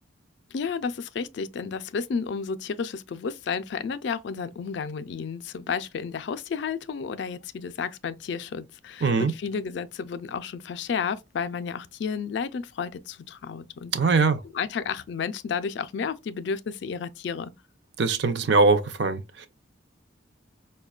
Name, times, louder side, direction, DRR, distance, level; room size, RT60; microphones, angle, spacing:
voice 1, 0.5-14.2 14.5-17.5, left 6 dB, 60° left, 0.3 m, -32 dB
voice 2, 9.0-9.3 13.9-14.4 18.0-19.5, right 4 dB, 60° right, 0.5 m, -22 dB
4.8 x 2.2 x 2.3 m
head